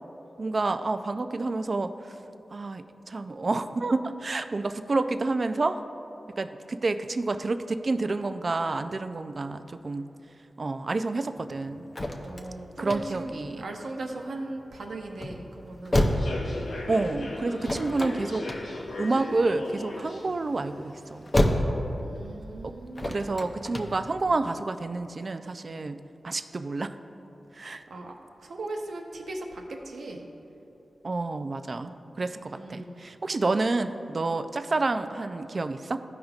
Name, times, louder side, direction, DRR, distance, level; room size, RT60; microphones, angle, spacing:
voice 1, 0.4-1.9 2.5-5.8 6.4-10.1 10.6-11.9 12.8-13.6 16.9-18.4 19.0-21.2 23.1-26.0 26.2-27.0 27.6-27.8 31.0-36.0, right 3 dB, 45° right, 10 dB, 0.3 m, -29 dB
sound 1, 11.4-24.2, left 1 dB, 30° left, 0.6 m, -31 dB
voice 2, 12.2-16.0 22.0-23.3 27.9-28.1 28.4-30.2 32.5-33.0, right 2 dB, 80° right, 2 dB, 0.8 m, -38 dB
Human voice / Subway metro underground, 16.0-21.5, left 2 dB, 80° left, 0.9 m, -38 dB
14.5 x 5.1 x 2.4 m, 2.9 s
wide cardioid pair, 95°, 0 cm